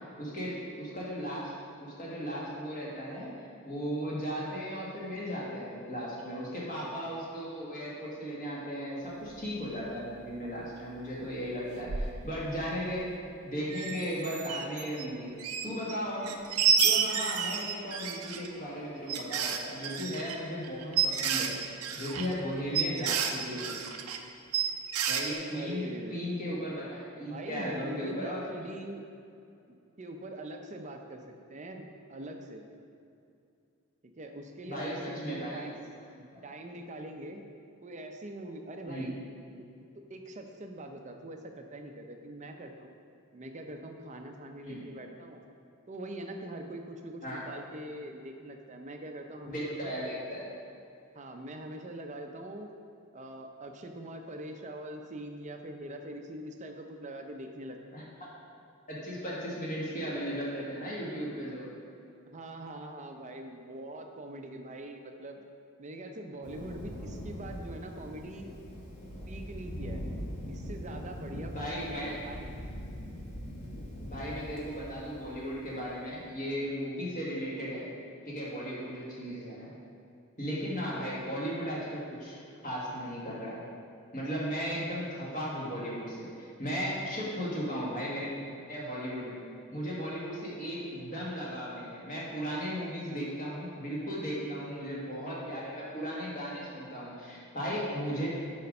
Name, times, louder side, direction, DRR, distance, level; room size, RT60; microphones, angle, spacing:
voice 1, 0.2-1.5 1.8-13.1 13.4-15.3 15.6-16.4 16.8-21.5 21.9-23.8 25.0-28.4 34.6-35.7 36.1-36.4 38.8-39.2 44.6-44.8 47.2-47.4 49.4-50.5 57.9-58.3 58.9-61.7 71.5-72.1 74.1-77.9 78.2-79.7 80.4-83.6 84.1-88.3 88.7-89.4 89.7-98.3, equal, 35° left, -6 dB, 1.6 m, -36 dB
sound 1, 11.9-12.1 12.5-12.6 12.9-13.0 13.7-15.1 15.4-16.0 16.2-18.5 19.1-24.2 24.5-25.3, right 7 dB, 80° right, 0.6 m, -30 dB
voice 2, 25.5-26.3 27.2-29.0 29.7-32.6 34.0-35.8 36.4-37.4 37.8-39.1 40.1-42.9 43.3-45.4 45.9-49.9 51.1-52.7 53.1-58.0 62.3-65.4 65.8-68.5 69.3-70.0 70.5-72.5 94.3-95.4, right 1 dB, 35° right, 4 dB, 0.6 m, -43 dB
Thunder, 66.4-76.1, equal, 90° left, 1.4 m, -42 dB
6.8 x 5.1 x 5.3 m, 2.5 s
head